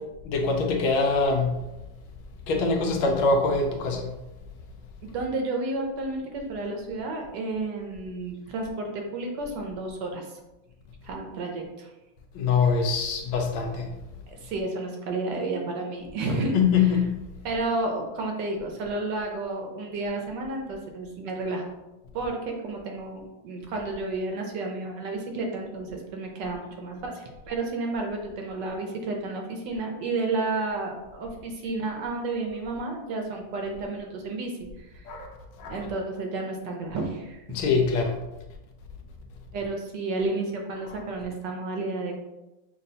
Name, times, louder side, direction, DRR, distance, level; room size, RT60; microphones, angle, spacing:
voice 1, 0.3-1.6 2.5-4.1 12.3-13.9 16.5-17.2 35.0-35.3 35.6-35.9 37.5-38.2, left 4 dB, 85° left, 2 dB, 1.5 m, -24 dB
voice 2, 5.0-10.4 11.0-11.9 14.4-16.6 17.4-21.7 22.1-35.1 35.6-37.4 39.5-42.2, right 2 dB, 70° right, 2 dB, 1.2 m, -31 dB
6.2 x 2.4 x 2.7 m, 1.0 s
omnidirectional pair, 2.2 m